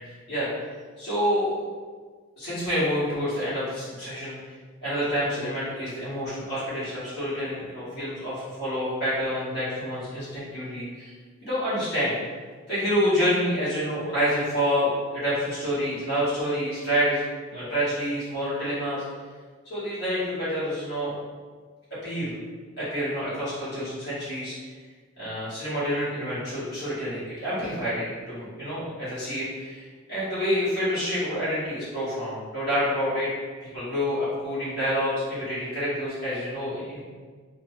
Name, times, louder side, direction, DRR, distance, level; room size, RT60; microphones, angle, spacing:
voice 1, 1.0-1.5 2.4-4.4 4.8-11.1 11.4-12.1 12.7-17.2 17.5-19.0 19.7-21.1 22.0-22.3 22.8-24.5 25.2-33.3 33.6-37.0, equal, 55° left, -12 dB, 1.3 m, -28 dB
2.9 x 2.2 x 3.1 m, 1.5 s
head